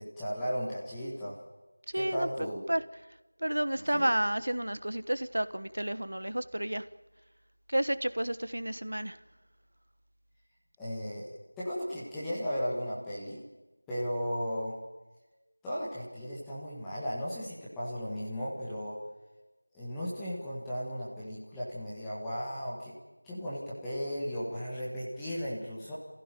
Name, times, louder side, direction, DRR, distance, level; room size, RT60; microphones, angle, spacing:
voice 1, 0.0-1.4 1.9-2.6 3.9-4.1 10.8-13.4 13.9-14.8 15.6-19.0 19.7-22.9 23.2-25.9, equal, 5° left, -10 dB, 1.6 m, -35 dB
voice 2, 1.9-2.3 2.7-2.8 3.4-6.8 7.7-9.2, right 1 dB, 60° right, 14 dB, 1.3 m, -31 dB
27.5 x 15.5 x 9.2 m, 1.1 s
figure-of-eight pair, 175°, 0 cm